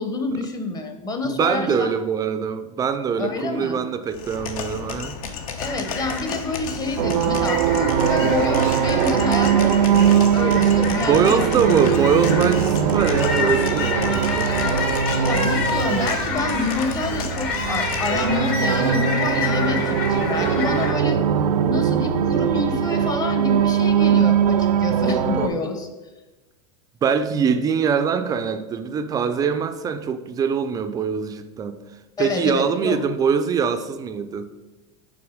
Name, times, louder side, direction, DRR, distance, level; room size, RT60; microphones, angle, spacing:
voice 1, 0.0-1.9 3.2-3.8 5.6-11.4 15.3-21.2 21.6-25.9 32.2-33.0, left 3 dB, 20° left, 5 dB, 0.7 m, -27 dB
voice 2, 1.2-5.2 11.0-14.5 27.0-31.8 32.2-34.5, right 6 dB, 20° right, 9 dB, 0.3 m, -23 dB
sound 1, 4.1-18.3, left 5 dB, 70° left, 0.9 m, -33 dB
sound 2, 5.6-20.9, left 4 dB, 50° left, 1.2 m, -29 dB
sound 3, 7.0-25.5, right 8 dB, 80° right, 0.5 m, -21 dB
6.0 x 3.4 x 4.9 m, 1.1 s
supercardioid pair, 130°, 19 cm